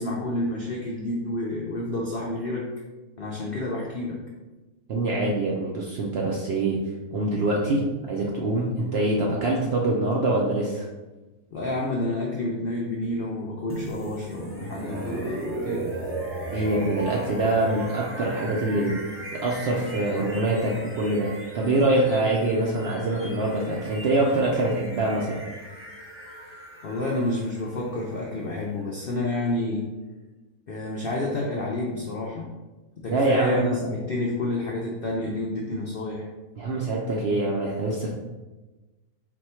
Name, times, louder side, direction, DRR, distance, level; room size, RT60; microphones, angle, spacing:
voice 1, 0.0-2.6 3.2-4.2 11.5-16.0 26.8-29.9 30.7-32.5 33.0-36.3, left 2 dB, 70° left, -3 dB, 0.5 m, -29 dB
voice 2, 4.9-6.8 7.1-7.8 8.1-10.8 16.5-18.9 19.4-25.4 33.1-33.8 36.6-38.1, right 2 dB, 65° right, -2 dB, 0.6 m, -24 dB
sound 1, 13.7-29.6, right 2 dB, 15° right, 0.4 m, -37 dB
4.2 x 2.2 x 4.2 m, 1.1 s
omnidirectional pair, 1.6 m